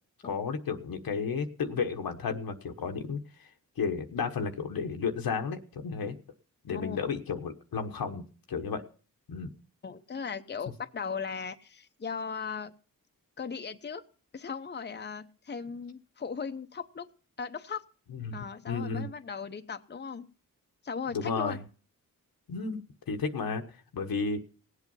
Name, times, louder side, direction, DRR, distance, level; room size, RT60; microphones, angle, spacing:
voice 1, 0.2-3.5 3.8-6.2 6.6-8.8 9.3-9.5 18.1-19.1 21.1-21.6 22.5-23.6 23.9-24.4, left 5 dB, 85° left, 5 dB, 1.3 m, -33 dB
voice 2, 9.8-12.7 13.4-14.0 14.3-17.1 17.4-17.8 18.3-20.3 20.8-21.6, left 6 dB, 30° left, 8 dB, 0.8 m, -37 dB
17.5 x 8.2 x 5.6 m, 0.40 s
cardioid pair, 55°, 35 cm